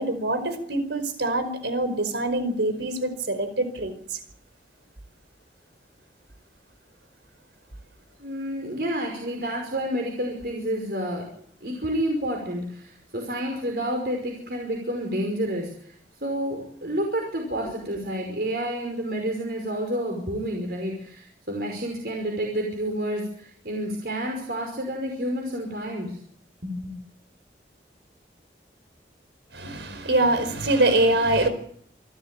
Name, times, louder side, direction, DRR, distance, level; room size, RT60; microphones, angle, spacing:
voice 1, 0.0-4.2 29.5-31.5, right 2 dB, 90° right, 4.9 m, -24 dB
voice 2, 8.2-11.3 11.6-15.9 16.2-26.2 26.6-26.9, equal, 60° right, 5.4 m, -29 dB
27.5 x 13.5 x 9.1 m
head